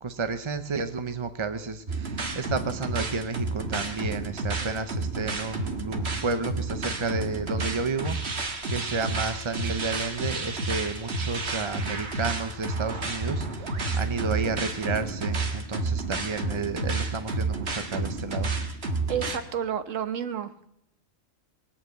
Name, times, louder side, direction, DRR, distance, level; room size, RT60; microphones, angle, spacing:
voice 1, 0.0-18.5, right 4 dB, 35° right, 9 dB, 0.5 m, -31 dB
sound 1, 1.9-19.4, right 3 dB, 50° right, 1.8 m, -31 dB
voice 2, 19.1-20.6, right 8 dB, 70° right, 10 dB, 1.4 m, -30 dB
20.5 x 8.7 x 8.0 m, 0.80 s
omnidirectional pair, 1.4 m